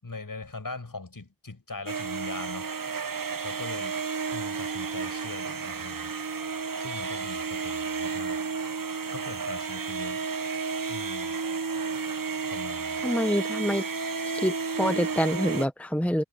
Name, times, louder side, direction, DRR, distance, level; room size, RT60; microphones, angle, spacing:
voice 1, 0.0-3.0 3.4-4.0 4.3-6.1 6.8-8.4 9.1-10.2 10.9-11.4 12.5-13.1, left 3 dB, 45° left, 6.7 m, -41 dB
sound 1, 1.9-15.7, right 5 dB, 45° right, 1.1 m, -32 dB
voice 2, 13.0-13.8 14.3-16.2, equal, 5° left, 1.1 m, -26 dB
wide cardioid pair, 55°, 46 cm